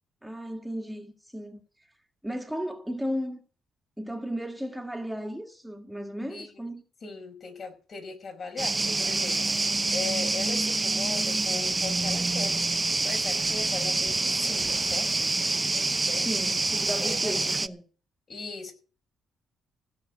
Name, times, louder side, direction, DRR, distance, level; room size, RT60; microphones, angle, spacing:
voice 1, 0.2-1.6 2.2-3.4 4.0-6.8 16.1-17.8, equal, 5° right, 1.8 m, -35 dB
voice 2, 7.0-12.7 13.0-15.1 15.4-16.3 17.0-17.4 18.3-18.7, left 4 dB, 50° left, 5.3 m, -39 dB
sound 1, 8.6-17.7, right 3 dB, 20° right, 0.8 m, -27 dB
16.5 x 5.9 x 9.4 m
cardioid pair, 90°, 0 cm